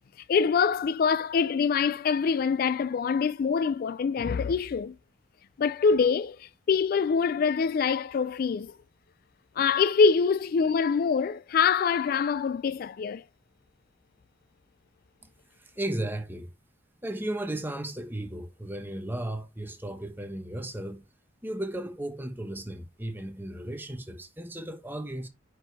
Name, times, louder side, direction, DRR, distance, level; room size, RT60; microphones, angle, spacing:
voice 1, 0.3-4.9 5.6-8.7 9.6-13.2, left 5 dB, 50° left, 0.3 m, -25 dB
voice 2, 15.6-16.5 17.0-21.0 21.4-25.3, right 1 dB, 10° right, 1.1 m, -35 dB
10.0 x 4.8 x 3.4 m
head